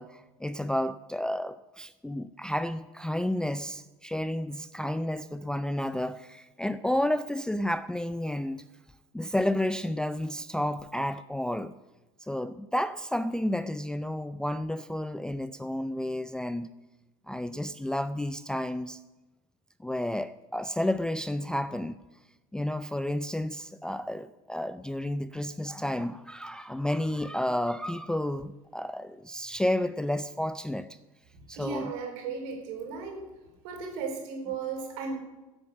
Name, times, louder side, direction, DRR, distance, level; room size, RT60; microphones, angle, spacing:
voice 1, 0.0-8.6 9.1-11.7 12.2-16.7 17.3-19.0 19.8-22.0 22.5-30.9 31.5-31.9, left 1 dB, 5° left, 0.5 m, -31 dB
voice 2, 31.3-33.2 33.6-35.2, right 5 dB, 60° right, 4.4 m, -35 dB
16.0 x 8.4 x 7.3 m
hypercardioid pair, 80°, 18 cm